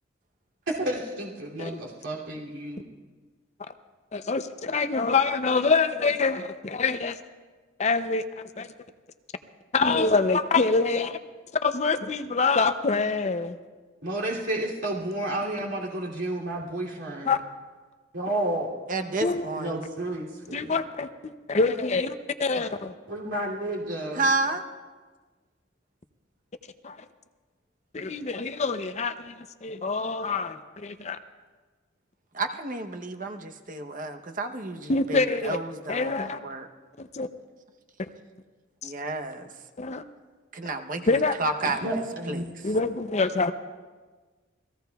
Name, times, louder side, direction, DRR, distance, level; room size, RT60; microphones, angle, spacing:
voice 1, 0.7-2.8 14.0-17.3 18.1-18.7 19.6-20.7 23.1-24.3 41.6-42.5, right 1 dB, 75° right, -4 dB, 2.8 m, -31 dB
voice 2, 4.1-7.2 7.8-8.7 9.7-11.2 11.6-13.6 17.3-17.4 19.2-19.5 20.5-22.9 26.8-27.0 27.9-31.2 34.9-35.6 35.9-36.4 37.0-37.3 38.8-38.9 39.8-40.0 41.1-41.3 42.6-43.5, left 4 dB, 35° left, 9 dB, 0.6 m, -25 dB
voice 3, 18.9-19.8 24.2-24.6 32.3-36.7 38.8-39.5 40.5-42.0 42.3-42.5, right 2 dB, 45° right, 6 dB, 0.9 m, -31 dB
28.5 x 18.5 x 2.3 m, 1.4 s
head